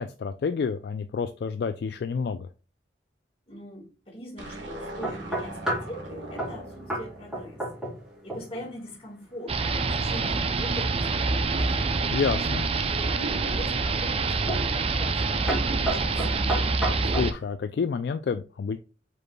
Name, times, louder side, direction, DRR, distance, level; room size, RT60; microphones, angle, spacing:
voice 1, 0.0-2.5 12.1-12.7 17.1-18.8, left 5 dB, 60° left, 0.3 m, -29 dB
voice 2, 3.5-7.8 8.2-12.0 12.8-16.5, equal, 30° left, 1.9 m, -42 dB
sound 1, 4.4-8.8, right 1 dB, 80° right, 1.2 m, -41 dB
sound 2, 5.0-5.9 6.4-6.6 6.9-7.1 7.3-8.0 8.3-8.7 12.0-12.7 13.3-13.7 14.5-14.7 15.0-15.2 15.5-17.3, right 1 dB, 5° right, 2.2 m, -31 dB
sound 3, 9.5-17.3, right 3 dB, 30° right, 0.4 m, -26 dB
5.0 x 4.6 x 2.2 m
head